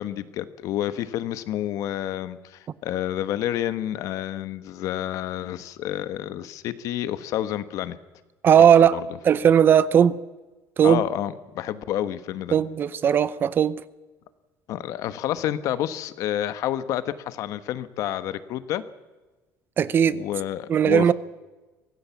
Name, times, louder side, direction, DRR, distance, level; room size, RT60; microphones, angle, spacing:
voice 1, 0.0-8.0 8.9-9.0 10.8-12.6 14.7-18.8 20.0-21.1, left 12 dB, 60° left, 13 dB, 1.2 m, -29 dB
voice 2, 8.4-9.0 9.2-10.2 10.8-11.0 12.5-13.8 19.8-20.2 20.7-21.1, right 8 dB, 35° right, 17 dB, 0.7 m, -17 dB
24.0 x 17.0 x 7.1 m, 1.2 s
cardioid pair, 155°, 6 cm